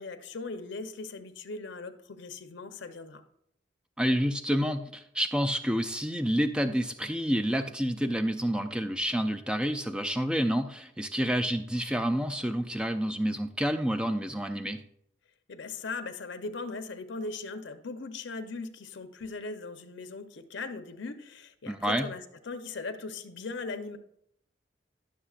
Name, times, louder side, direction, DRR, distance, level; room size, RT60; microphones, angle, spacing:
voice 1, 0.0-3.2 15.5-24.0, left 3 dB, 80° left, 9 dB, 0.7 m, -39 dB
voice 2, 4.0-14.8 21.7-22.1, equal, 5° right, 7 dB, 0.3 m, -29 dB
11.0 x 6.6 x 2.4 m, 0.71 s
head